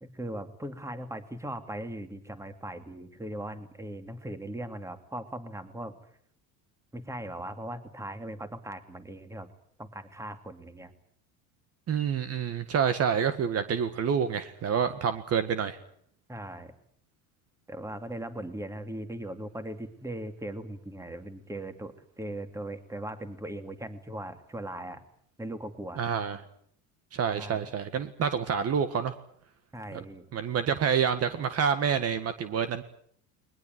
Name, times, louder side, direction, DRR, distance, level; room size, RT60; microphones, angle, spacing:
voice 1, 0.0-6.0 6.9-9.5 9.8-10.9 16.3-16.7 17.7-25.0 25.4-26.0 27.4-27.7 29.7-30.2, right 1 dB, 10° right, 9 dB, 2.6 m, -39 dB
voice 2, 11.9-15.8 26.0-26.4 27.1-29.2 30.3-32.8, right 7 dB, 40° right, 11 dB, 1.8 m, -28 dB
21.5 x 20.5 x 9.3 m, 0.65 s
supercardioid pair, 120°, 36 cm